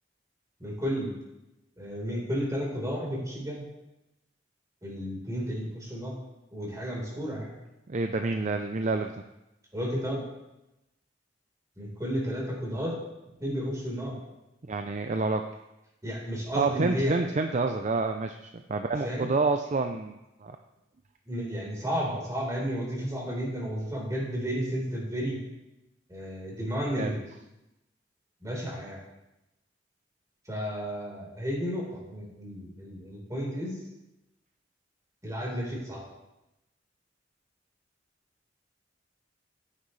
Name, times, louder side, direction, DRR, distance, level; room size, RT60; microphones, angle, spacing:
voice 1, 0.6-1.1 1.8-3.6 4.8-6.2 6.5-7.5 9.7-10.2 11.8-13.0 13.4-14.2 16.0-17.2 19.0-19.3 21.3-25.4 26.1-27.2 28.4-29.0 30.5-33.8 35.2-36.0, equal, 20° right, -4 dB, 4.3 m, -32 dB
voice 2, 7.9-9.1 14.7-15.5 16.5-20.5 26.9-27.1, right 3 dB, 40° right, 6 dB, 0.5 m, -28 dB
14.0 x 9.9 x 3.3 m, 0.93 s
head